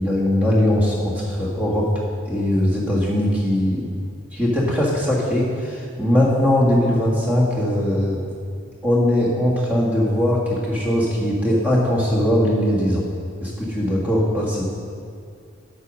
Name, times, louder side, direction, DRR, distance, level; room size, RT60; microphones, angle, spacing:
voice 1, 0.0-1.9 2.3-3.9 4.3-8.2 8.8-13.0 13.4-14.6, left 1 dB, 5° right, -5 dB, 1.6 m, -20 dB
8.2 x 6.1 x 6.4 m, 2.3 s
head